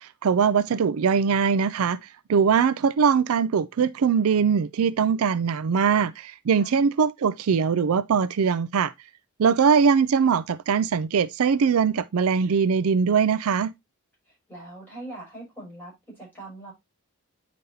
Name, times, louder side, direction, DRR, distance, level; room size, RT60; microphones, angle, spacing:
voice 1, 0.0-8.9 9.4-13.7, right 6 dB, 75° right, 0.4 m, -22 dB
voice 2, 14.3-16.7, right 2 dB, 10° left, 5.8 m, -42 dB
9.4 x 5.2 x 2.7 m
head